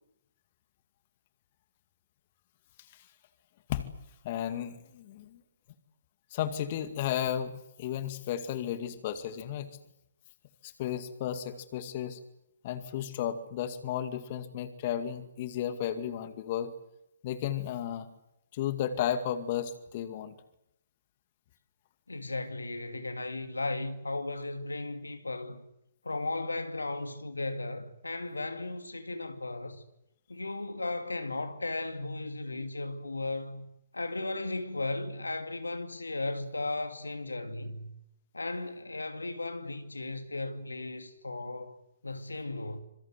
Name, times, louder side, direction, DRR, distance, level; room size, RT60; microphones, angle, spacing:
voice 1, 4.2-5.4 6.3-9.7 10.6-12.2 12.6-16.7 17.2-18.1 18.5-20.3, left 10 dB, 40° left, 2.2 m, -33 dB
voice 2, 22.1-25.6 26.0-29.8 30.3-33.7 33.9-37.9 38.3-42.8, left 2 dB, 80° left, 2.5 m, -36 dB
26.5 x 24.0 x 8.0 m
figure-of-eight pair, 125°, 0 cm